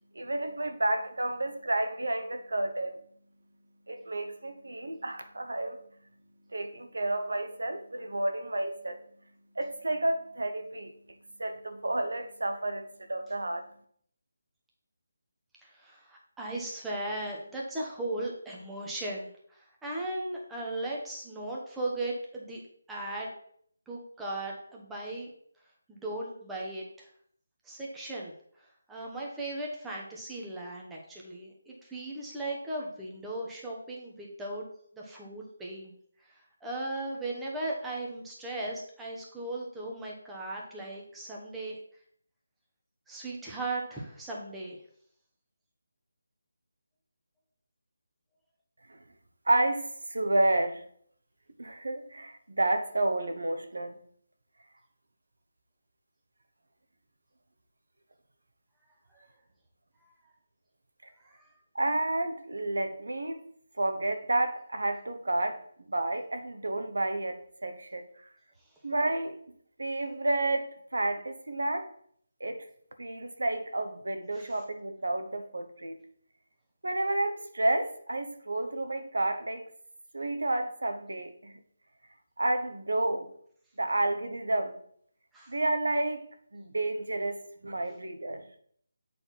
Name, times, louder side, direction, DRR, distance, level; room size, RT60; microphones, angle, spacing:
voice 1, 0.1-3.0 3.9-5.8 6.5-9.0 9.5-13.7 48.9-49.0 49.4-50.9 51.6-54.0 61.0-61.1 61.7-63.5 63.8-68.3 68.8-69.4 69.8-71.9 72.4-72.7 73.0-76.0 76.8-79.7 80.1-81.6 82.4-83.3 83.8-84.8 85.5-88.4, right 2 dB, 80° right, 1.0 m, -31 dB
voice 2, 15.6-22.6 22.9-23.3 23.9-25.3 25.9-27.1 27.6-34.6 34.9-35.9 36.2-41.8 43.1-44.8 59.1-59.3 61.2-61.5 74.3-74.5 85.3-85.5, right 2 dB, 5° right, 1.2 m, -37 dB
7.6 x 4.2 x 4.2 m
figure-of-eight pair, 160°, 0 cm